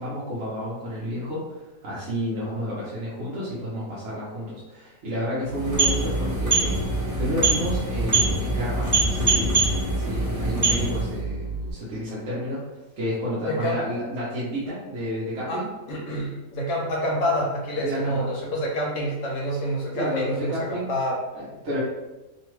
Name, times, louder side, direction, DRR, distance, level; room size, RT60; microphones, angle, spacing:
voice 1, 0.0-9.7 10.0-15.7 17.7-18.3 19.9-20.9 21.3-21.8, equal, 55° right, -8 dB, 0.8 m, -31 dB
sound 1, 5.4-11.2, right 2 dB, 20° right, 0.4 m, -24 dB
sound 2, 5.8-11.7, right 3 dB, 50° left, 1.0 m, -31 dB
voice 2, 13.4-13.8 15.5-21.2, equal, 75° left, -2 dB, 1.4 m, -27 dB
3.1 x 2.2 x 3.0 m, 1.1 s
omnidirectional pair, 1.8 m